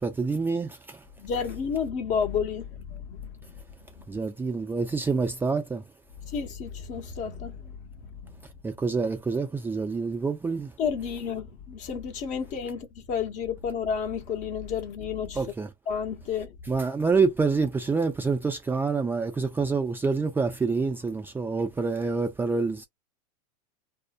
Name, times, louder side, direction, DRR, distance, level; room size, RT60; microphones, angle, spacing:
voice 1, 0.0-1.0 4.1-5.8 8.6-10.7 15.3-15.7 16.6-22.8, right 4 dB, 10° right, 0.4 m, -27 dB
voice 2, 1.2-3.3 6.3-7.7 10.8-15.4 15.9-16.5, left 6 dB, 40° left, 0.9 m, -31 dB
2.5 x 2.1 x 2.4 m
supercardioid pair, 120°, 19 cm